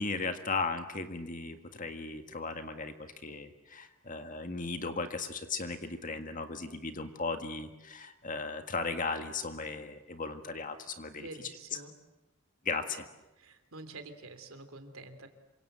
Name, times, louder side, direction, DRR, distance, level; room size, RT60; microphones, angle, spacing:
voice 1, 0.0-11.3 12.7-13.1, left 4 dB, 40° left, 7 dB, 1.8 m, -36 dB
voice 2, 11.1-11.9 13.4-15.3, right 2 dB, 80° right, 8 dB, 3.1 m, -47 dB
27.5 x 25.0 x 8.0 m, 1.0 s
head